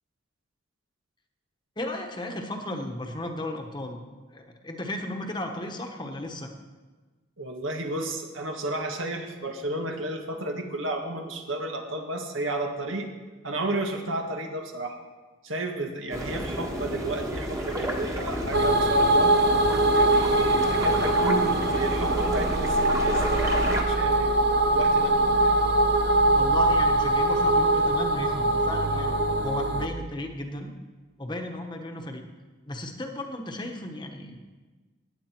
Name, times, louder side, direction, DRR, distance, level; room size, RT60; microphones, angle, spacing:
voice 1, 1.8-4.0 4.3-6.5 26.3-30.7 31.2-32.2 32.7-34.4, left 1 dB, 20° left, 4 dB, 1.1 m, -35 dB
voice 2, 7.4-13.1 13.4-15.0 15.4-19.6 19.9-25.6, right 2 dB, 80° right, 3 dB, 1.6 m, -32 dB
sound 1, 16.1-23.8, equal, 15° right, 1.3 m, -32 dB
sound 2, 18.5-29.9, right 1 dB, 55° right, 0.8 m, -22 dB
17.5 x 8.9 x 4.5 m, 1.3 s
head